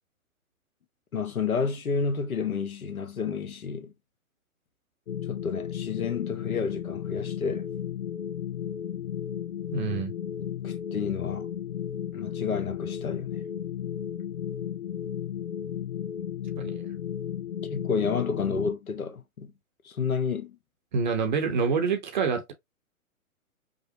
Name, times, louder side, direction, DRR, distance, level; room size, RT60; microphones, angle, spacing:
voice 1, 1.1-3.9 5.3-7.7 10.4-11.5 12.1-13.4 16.8-16.9 17.7-19.5 19.8-20.6, left 5 dB, 80° left, 1.0 m, -30 dB
sound 1, 5.1-18.7, left 9 dB, 50° left, 0.5 m, -34 dB
voice 2, 9.7-10.1 16.6-16.8 20.9-22.5, right 5 dB, 35° right, 0.7 m, -27 dB
5.1 x 2.0 x 2.6 m
figure-of-eight pair, 125°, 42 cm